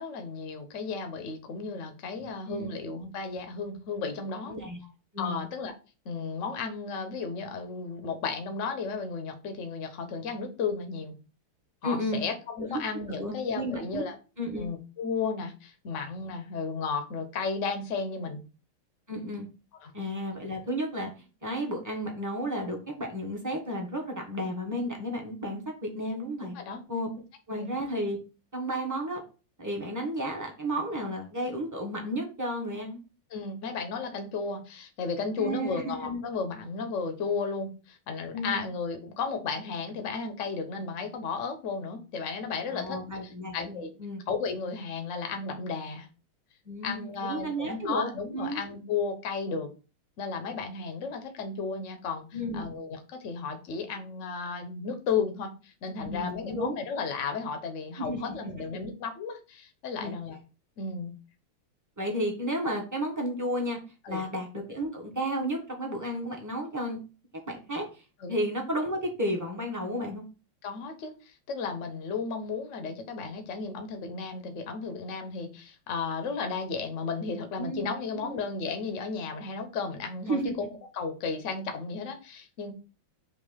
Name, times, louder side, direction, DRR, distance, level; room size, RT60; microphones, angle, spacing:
voice 1, 0.0-4.6 5.2-5.7 6.0-11.1 11.8-14.2 14.6-18.4 19.8-19.9 26.5-26.8 27.5-27.7 33.3-43.0 43.5-43.9 44.3-46.1 46.8-49.7 50.2-52.3 52.5-60.4 60.8-61.1 64.0-64.2 68.2-68.4 70.6-80.4 80.9-82.7, left 5 dB, 45° left, 6 dB, 1.0 m, -34 dB
voice 2, 2.2-2.7 4.5-4.8 5.1-5.4 11.8-12.2 12.6-12.8 13.1-14.0 14.4-14.7 19.1-19.5 19.9-21.1 21.4-26.6 26.9-27.1 27.5-28.2 28.5-29.2 29.6-33.0 35.4-36.2 38.3-38.7 42.7-44.2 46.6-48.6 52.3-52.7 56.0-56.8 58.0-58.2 60.0-60.1 62.0-63.8 64.1-67.0 67.5-68.0 68.3-70.2 77.6-78.4 80.2-80.5, equal, 10° right, 1 dB, 1.0 m, -32 dB
6.0 x 2.9 x 5.5 m, 0.34 s
omnidirectional pair, 2.3 m